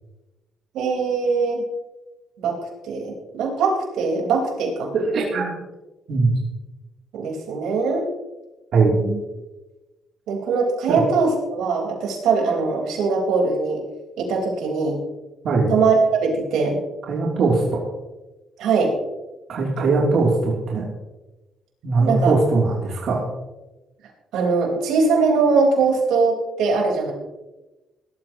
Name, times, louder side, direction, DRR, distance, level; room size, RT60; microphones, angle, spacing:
voice 1, 0.7-1.6 2.4-2.6 2.8-4.9 7.1-8.1 8.9-9.2 10.3-13.8 14.2-15.0 15.7-16.8 18.6-18.9 19.8-20.0 22.1-22.3 24.3-27.1, right 4 dB, 85° right, -1 dB, 4.4 m, -21 dB
voice 2, 4.9-5.5 6.1-6.3 8.7-8.9 10.9-11.0 15.4-15.7 17.1-17.9 19.5-20.8 21.8-23.3, right 3 dB, 65° right, -3 dB, 3.0 m, -20 dB
19.0 x 13.5 x 3.0 m, 1.1 s
cardioid pair, 90°, 0 cm